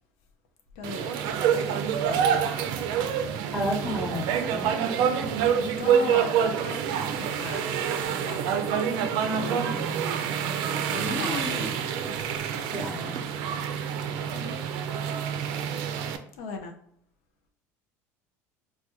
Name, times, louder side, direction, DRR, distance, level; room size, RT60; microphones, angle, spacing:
voice 1, 0.8-1.2 2.0-2.4 3.7-4.1 5.3-8.6 9.4-9.9 10.9-12.2 14.3-14.6 16.3-16.7, left 4 dB, 80° left, 4 dB, 0.5 m, -38 dB
sound 1, 0.8-16.2, right 8 dB, 70° right, 0.4 m, -27 dB
voice 2, 3.5-4.2 4.5-4.7 10.9-11.7 12.7-13.2, equal, 5° left, -5 dB, 0.8 m, -32 dB
3.3 x 2.2 x 2.8 m, 0.66 s
supercardioid pair, 100°, 8 cm